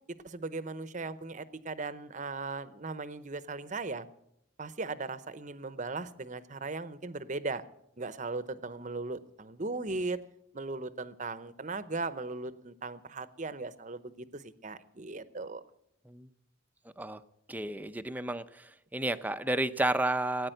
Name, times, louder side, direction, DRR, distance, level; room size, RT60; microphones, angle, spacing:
voice 1, 0.1-4.1 4.6-7.6 8.0-10.2 10.5-15.6, right 3 dB, 40° right, 15 dB, 0.8 m, -38 dB
voice 2, 17.5-20.5, right 1 dB, 10° right, 11 dB, 0.6 m, -31 dB
17.5 x 9.6 x 7.8 m, 0.79 s
head